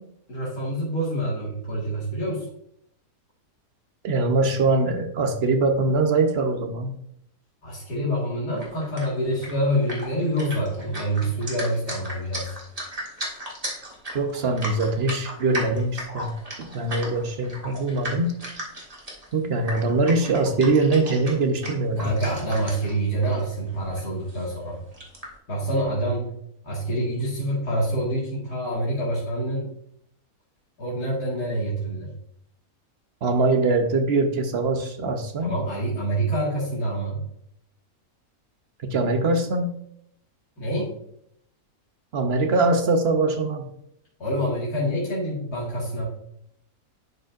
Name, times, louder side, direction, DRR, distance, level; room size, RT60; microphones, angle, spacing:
voice 1, 0.3-2.5 7.6-12.6 22.0-24.8 25.5-26.3 26.6-29.7 30.8-32.1 35.4-37.2 40.6-40.9 44.2-46.0, right 1 dB, 85° left, -7 dB, 2.4 m, -26 dB
voice 2, 4.0-6.9 14.1-16.3 16.6-18.3 19.3-22.1 33.2-35.5 38.8-39.7 42.1-43.7, right 3 dB, 50° right, 6 dB, 0.9 m, -22 dB
sound 1, 8.6-23.0 23.2-23.4 23.7-24.5 24.9-25.3, right 1 dB, 25° right, 1.7 m, -36 dB
11.0 x 5.0 x 2.5 m, 0.73 s
omnidirectional pair, 1.6 m